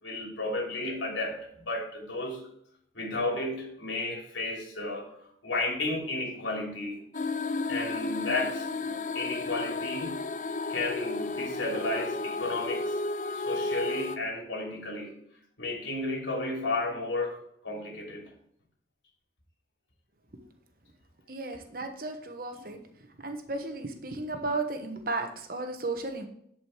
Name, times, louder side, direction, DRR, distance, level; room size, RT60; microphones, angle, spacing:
voice 1, 0.0-2.5 2.9-5.1 5.4-7.0 7.7-10.2 10.7-13.0 13.3-15.2 15.6-18.3, left 2 dB, 80° left, -1 dB, 3.2 m, -33 dB
sound 1, 7.1-14.2, left 3 dB, 40° left, 0.5 m, -33 dB
voice 2, 21.3-22.8 23.2-26.3, right 2 dB, 50° right, 5 dB, 1.2 m, -34 dB
11.0 x 5.2 x 4.6 m, 0.70 s
head